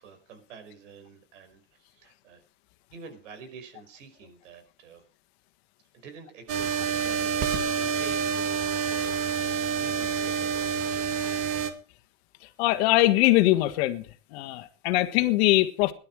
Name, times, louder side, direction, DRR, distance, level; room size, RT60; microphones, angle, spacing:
voice 1, 0.0-1.6 1.9-2.4 2.9-5.0 5.9-9.1 9.5-11.2, right 5 dB, 85° right, 5.3 m, -47 dB
sound 1, 6.5-11.7, right 7 dB, 40° right, 2.2 m, -28 dB
voice 2, 12.6-14.1 14.3-15.9, left 17 dB, 60° left, 1.7 m, -22 dB
17.5 x 11.5 x 4.7 m
supercardioid pair, 155°, 36 cm